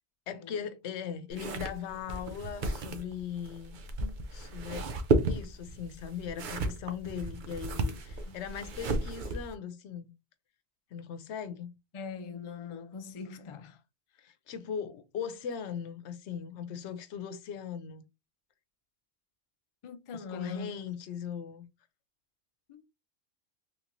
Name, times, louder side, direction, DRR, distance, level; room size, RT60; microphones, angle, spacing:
voice 1, 0.3-3.7 4.3-4.9 5.3-10.1 10.9-11.7 14.2-18.0 20.1-21.6, left 8 dB, 85° left, 0.9 m, -39 dB
sound 1, 1.3-9.5, right 2 dB, 55° right, 0.6 m, -33 dB
voice 2, 11.9-13.8 19.8-20.8 22.7-22.8, left 5 dB, 50° left, 0.3 m, -42 dB
3.5 x 2.9 x 2.5 m
omnidirectional pair, 1.1 m